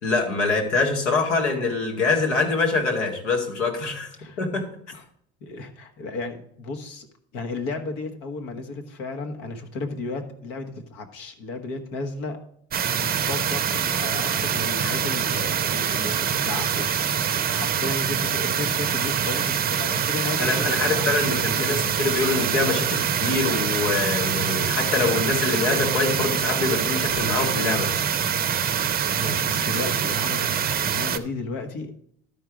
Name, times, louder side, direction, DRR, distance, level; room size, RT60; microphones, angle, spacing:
voice 1, 0.0-4.1 4.4-4.7 20.4-27.9, left 3 dB, 90° left, 1 dB, 2.1 m, -24 dB
voice 2, 5.4-7.1 7.3-12.4 13.0-21.9 29.1-31.9, left 3 dB, 70° left, 6 dB, 1.5 m, -34 dB
sound 1, 12.7-31.2, right 8 dB, 30° right, 0.6 m, -25 dB
12.0 x 4.6 x 5.0 m, 0.68 s
supercardioid pair, 90°, 34 cm